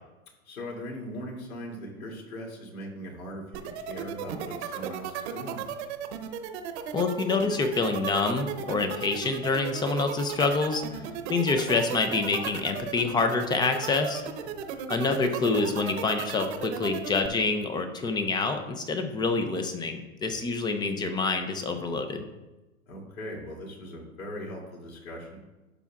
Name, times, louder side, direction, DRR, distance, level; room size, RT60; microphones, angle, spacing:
voice 1, 0.4-5.9 10.9-11.1 14.4-14.6 20.3-20.4 22.9-25.4, equal, 80° left, -1 dB, 2.8 m, -40 dB
sound 1, 3.5-17.3, right 9 dB, 55° right, 1.0 m, -35 dB
voice 2, 6.9-11.0 11.3-14.2 14.9-22.2, left 3 dB, 10° left, 7 dB, 0.4 m, -27 dB
11.5 x 6.9 x 2.4 m, 1.1 s
hypercardioid pair, 115°, 41 cm